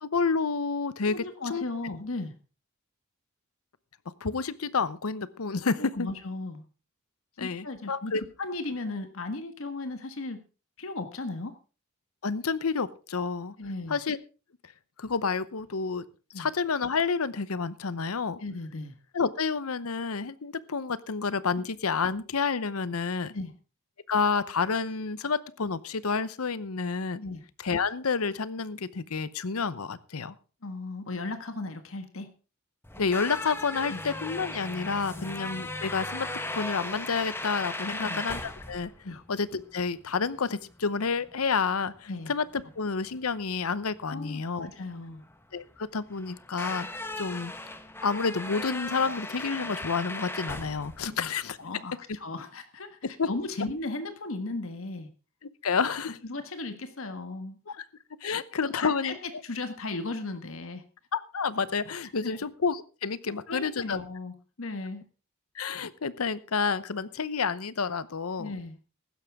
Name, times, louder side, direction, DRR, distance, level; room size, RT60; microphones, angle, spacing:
voice 1, 0.0-1.2 1.5-1.7 4.2-6.1 7.4-8.2 12.2-13.5 13.9-14.2 15.0-16.0 16.4-18.4 19.1-23.3 24.1-27.2 27.6-30.3 33.0-36.3 36.5-38.9 39.3-44.7 45.5-46.9 47.2-47.5 48.0-51.6 53.0-53.3 55.6-56.2 57.8-57.9 58.2-59.2 61.1-64.0 65.5-68.6, left 5 dB, 90° left, 17 dB, 0.8 m, -29 dB
voice 2, 1.0-2.3 5.6-6.6 7.4-10.4 10.8-11.5 13.6-14.0 16.3-16.5 18.4-18.9 23.3-23.5 27.2-27.4 30.6-32.3 33.9-34.0 35.1-35.3 37.9-38.2 39.0-39.2 42.1-42.3 44.0-45.2 51.0-51.3 51.6-55.1 56.2-57.6 58.2-58.4 58.6-59.1 59.4-60.8 62.2-62.4 63.5-65.0 68.4-68.8, left 2 dB, 65° left, 8 dB, 1.5 m, -36 dB
sound 1, 32.8-51.8, left 2 dB, 10° left, 1.3 m, -38 dB
15.5 x 12.0 x 3.6 m, 0.34 s
head